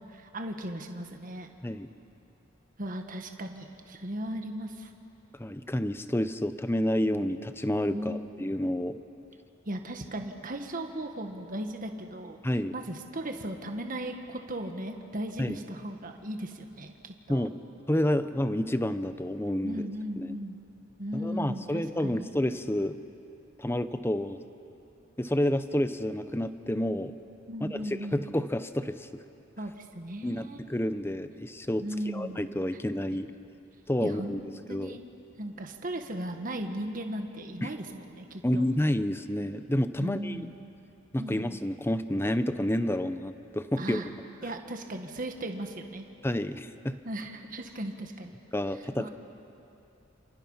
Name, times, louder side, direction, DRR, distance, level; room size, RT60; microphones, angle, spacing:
voice 1, 0.0-1.5 2.8-4.9 7.9-8.5 9.7-12.4 12.7-17.5 19.6-20.6 21.0-22.3 27.5-28.2 29.6-30.6 31.8-32.4 34.0-35.0 35.4-38.7 40.0-40.5 41.2-41.5 43.8-44.1 44.4-46.1 47.0-48.4 49.0-49.1, right 1 dB, 45° right, 4 dB, 1.6 m, -37 dB
voice 2, 5.4-9.0 12.4-12.7 15.4-15.6 17.3-17.6 17.9-19.9 20.2-20.4 21.1-23.0 23.6-24.4 25.2-27.1 27.8-29.2 30.2-31.8 32.1-33.3 33.9-34.4 34.7-35.0 37.6-37.7 38.4-40.5 41.1-44.0 46.2-47.0 48.5-49.1, left 1 dB, 10° left, 11 dB, 0.8 m, -29 dB
29.0 x 27.5 x 5.7 m, 2.8 s
head